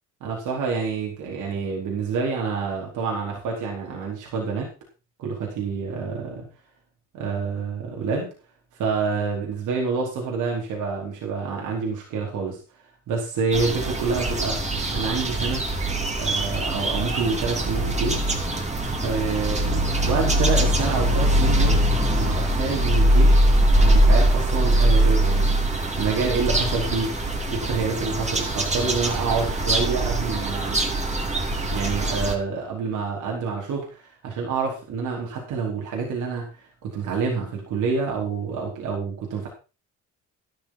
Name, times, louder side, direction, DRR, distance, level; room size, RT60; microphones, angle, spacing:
voice 1, 0.2-4.7 5.2-6.5 7.1-8.3 8.8-12.6 13.1-14.6 14.9-15.6 16.2-18.2 19.0-21.8 22.1-23.4 23.8-25.5 26.0-27.1 27.5-30.8 31.7-36.5 36.8-39.5, right 5 dB, 85° right, -1 dB, 4.6 m, -27 dB
sound 1, 13.5-32.3, right 1 dB, 20° right, 3.0 m, -22 dB
12.5 x 11.5 x 4.5 m, 0.32 s
cardioid pair, 90°, 30 cm